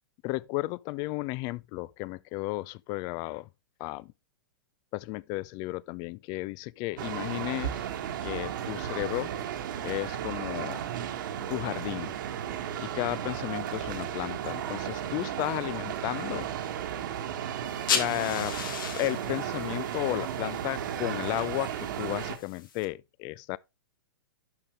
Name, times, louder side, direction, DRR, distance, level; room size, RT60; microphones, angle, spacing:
voice 1, 0.2-3.5 3.8-4.1 4.9-7.8 8.2-9.3 9.8-10.8 11.5-12.2 12.8-16.5 17.9-18.6 18.9-23.6, left 20 dB, 35° left, 0.4 m, -33 dB
sound 1, 7.0-22.4, right 10 dB, 55° right, 1.4 m, -34 dB
sound 2, 17.6-22.8, left 7 dB, 60° left, 1.8 m, -36 dB
11.5 x 5.3 x 3.2 m
figure-of-eight pair, 110°, 12 cm